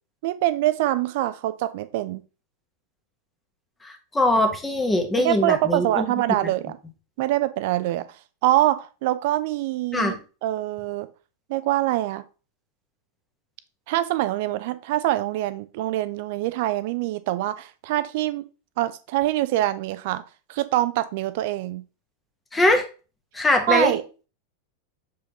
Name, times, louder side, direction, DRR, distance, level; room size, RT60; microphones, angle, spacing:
voice 1, 0.2-2.2 5.2-6.8 7.2-8.0 8.4-10.2 10.4-11.1 11.5-12.2 13.9-18.4 18.8-20.2 20.5-21.8 23.7-24.0, right 15 dB, 50° right, 14 dB, 0.5 m, -24 dB
voice 2, 3.8-6.0 9.9-10.2 22.5-22.8 23.3-23.9, left 1 dB, 10° left, 5 dB, 1.2 m, -22 dB
7.0 x 5.0 x 2.9 m, 0.34 s
figure-of-eight pair, 90°, 0 cm